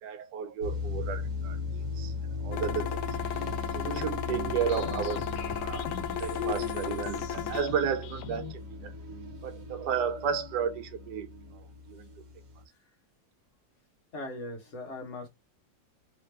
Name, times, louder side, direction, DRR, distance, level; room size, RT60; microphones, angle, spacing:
voice 1, 0.0-2.1 2.4-3.0 3.7-5.9 6.2-8.9 9.4-11.3 11.9-12.1, right 7 dB, 80° right, 1.2 m, -33 dB
sound 1, 0.6-12.6, left 3 dB, 55° right, 1.3 m, -38 dB
sound 2, 2.5-7.6, left 9 dB, 65° left, 0.8 m, -35 dB
sound 3, 4.6-8.5, left 10 dB, 90° left, 1.2 m, -41 dB
voice 2, 14.1-15.3, left 2 dB, 50° left, 1.3 m, -39 dB
3.4 x 2.8 x 3.2 m
omnidirectional pair, 1.8 m